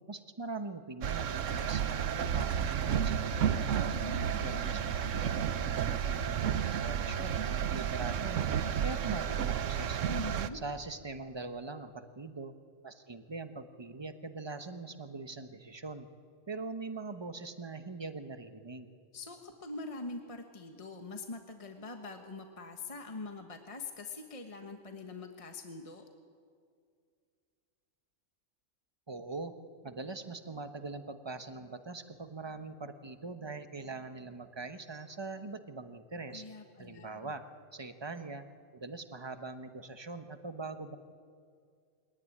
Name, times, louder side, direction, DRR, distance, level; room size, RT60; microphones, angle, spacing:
voice 1, 0.1-4.0 4.4-8.5 8.8-10.1 10.5-12.5 12.8-16.1 16.5-18.9 29.1-29.5 29.8-36.4 36.8-37.4 37.7-38.4 38.7-41.0, right 3 dB, 20° right, 8 dB, 1.0 m, -42 dB
sound 1, 1.0-10.5, right 8 dB, 70° right, 1.1 m, -32 dB
voice 2, 3.9-5.0 10.0-10.6 19.1-26.0 36.3-37.3, left 3 dB, 25° left, 5 dB, 1.3 m, -44 dB
23.0 x 18.0 x 9.8 m, 2.2 s
omnidirectional pair, 1.4 m